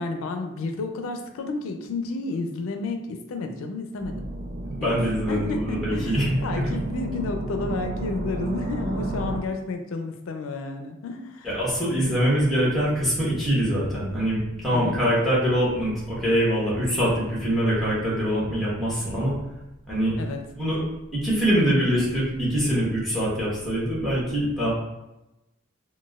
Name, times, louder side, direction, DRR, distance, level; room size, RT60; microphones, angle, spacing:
voice 1, 0.0-4.3 4.8-5.0 5.3-11.5 14.7-15.0 20.2-20.5, left 3 dB, 90° left, 5 dB, 0.4 m, -31 dB
sound 1, 4.0-9.4, right 2 dB, 50° right, 0.4 m, -32 dB
voice 2, 4.6-6.4 11.4-19.3 19.9-20.1 20.5-20.8 21.1-24.7, equal, ahead, -7 dB, 1.1 m, -24 dB
4.0 x 2.2 x 2.3 m, 0.96 s
head